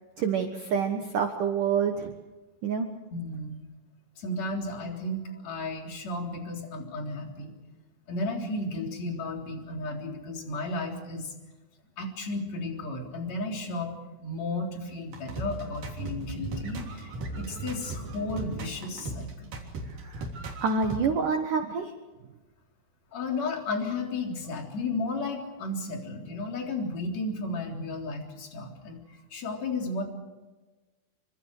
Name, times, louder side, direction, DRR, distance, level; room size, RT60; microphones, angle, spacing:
voice 1, 0.2-2.1 2.6-2.9 19.9-20.3 20.6-21.9, right 6 dB, 80° right, 4 dB, 1.8 m, -27 dB
voice 2, 3.1-3.6 4.2-7.5 8.1-11.3 12.0-19.7 23.1-30.0, left 2 dB, 35° left, 1 dB, 4.3 m, -34 dB
sound 1, 15.1-21.0, right 2 dB, 45° right, 4.5 m, -37 dB
27.0 x 25.5 x 4.9 m, 1.2 s
omnidirectional pair, 6.0 m